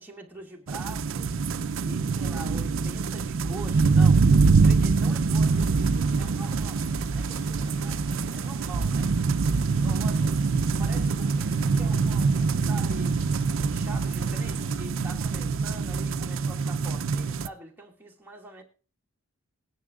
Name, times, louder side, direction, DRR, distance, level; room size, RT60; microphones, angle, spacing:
voice 1, 0.0-1.4 1.8-4.2 4.6-6.8 7.1-9.1 9.8-10.4 10.8-13.2 13.6-18.6, right 2 dB, 10° right, 2.0 m, -44 dB
sound 1, 0.7-17.5, right 4 dB, 65° right, 0.5 m, -24 dB
sound 2, 5.5-14.8, left 2 dB, 55° left, 1.6 m, -51 dB
20.5 x 10.0 x 2.4 m
head